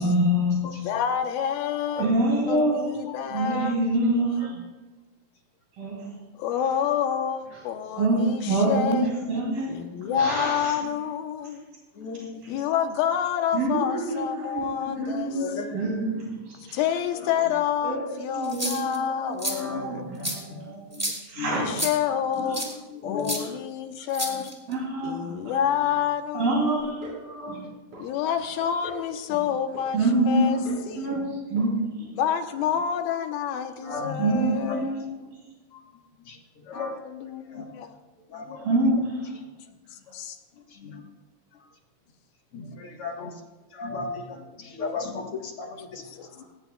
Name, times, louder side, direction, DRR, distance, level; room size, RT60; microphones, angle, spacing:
voice 1, 0.0-0.7 2.0-2.8 3.3-4.5 5.8-5.9 8.0-8.2 8.5-9.7 10.2-10.7 13.5-14.7 15.0-16.3 16.7-16.8 17.8-18.0 18.4-21.0 21.4-21.7 24.7-25.2 26.3-27.5 29.9-30.5 31.0-31.2 31.5-31.7 34.2-35.1 38.6-39.1, right 1 dB, 75° right, -3 dB, 4.7 m, -25 dB
voice 2, 0.8-2.1 2.5-3.8 6.4-9.1 9.7-11.6 12.5-15.6 16.7-20.0 21.5-24.5 25.0-26.9 28.0-30.6 30.8-31.2 32.1-35.0 36.7-37.4 37.7-38.0 40.1-40.4 46.0-46.3, left 9 dB, 85° left, 6 dB, 2.8 m, -28 dB
voice 3, 1.6-2.1 3.1-3.2 4.4-4.6 10.0-10.2 12.0-12.6 14.9-15.8 19.5-20.6 20.9-21.0 21.4-21.6 22.9-23.6 24.3-24.5 25.2-25.6 27.5-27.6 33.8-34.3 34.7-35.0 35.7-35.8 36.3-36.4 36.7-37.0 37.5-37.8 38.3-38.7 40.7-41.0 42.5-43.3 43.7-46.0 46.4-46.5, left 4 dB, 55° left, 2 dB, 1.8 m, -36 dB
sound 1, 18.4-19.0 19.4-19.5 20.2-20.4 20.9-21.2 21.8-21.9 22.5-22.7 23.2-23.4 24.1-24.7, right 1 dB, 10° right, 1.0 m, -29 dB
sound 2, 26.8-27.2 27.5-28.0 28.4-29.0 29.3-29.9 30.2-30.9 31.1-31.3 31.6-31.7 32.0-32.1, right 3 dB, 55° right, 6.3 m, -42 dB
20.0 x 17.5 x 2.3 m, 1.1 s
omnidirectional pair, 4.1 m